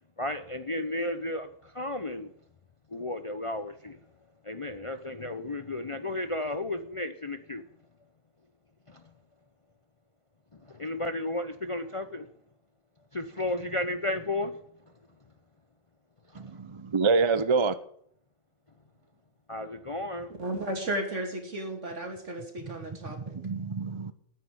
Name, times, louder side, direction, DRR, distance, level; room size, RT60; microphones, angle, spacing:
voice 1, 0.2-2.3 2.9-4.0 4.4-7.6 8.9-9.0 10.5-12.3 13.1-14.6 16.3-16.6 19.5-20.3, left 1 dB, 30° left, 0.7 m, -33 dB
voice 2, 16.3-17.7 23.1-24.1, right 4 dB, 30° right, 0.5 m, -27 dB
voice 3, 20.4-23.4, right 1 dB, 65° right, 3.1 m, -34 dB
9.8 x 9.2 x 9.8 m
omnidirectional pair, 1.4 m